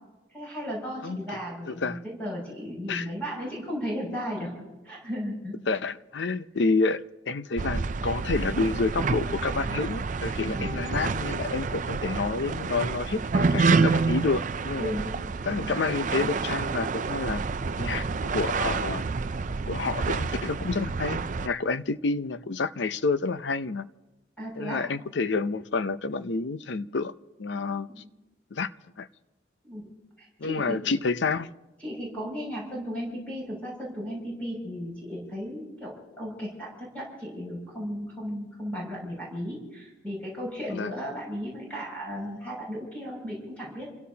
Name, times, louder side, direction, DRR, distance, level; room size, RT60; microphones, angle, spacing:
voice 1, 0.3-4.5 4.8-5.6 9.7-10.0 10.4-10.8 14.8-15.1 24.4-24.8 27.9-28.1 29.6-29.8 30.2-30.8 31.8-43.9, equal, 5° left, 6.4 m, -35 dB
voice 2, 1.7-2.0 2.9-3.1 5.7-14.9 15.4-17.4 17.8-18.1 18.3-19.1 19.7-23.9 24.6-27.1 27.4-28.0 28.5-29.1 30.4-31.5 40.7-40.9, left 4 dB, 65° left, 0.6 m, -29 dB
sound 1, 7.6-21.5, right 4 dB, 40° right, 0.4 m, -28 dB
29.5 x 17.0 x 2.8 m
head